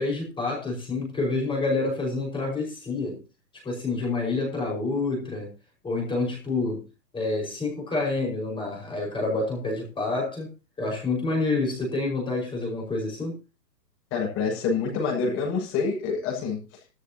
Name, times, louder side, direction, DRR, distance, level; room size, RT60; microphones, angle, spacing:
voice 1, 0.0-3.2 3.6-5.5 5.8-6.8 7.1-10.5 10.8-13.4, left 3 dB, 10° left, 5.3 m, -28 dB
voice 2, 14.1-16.8, left 5 dB, 25° left, 6.8 m, -27 dB
16.0 x 13.5 x 2.9 m
hypercardioid pair, 145°, 50 cm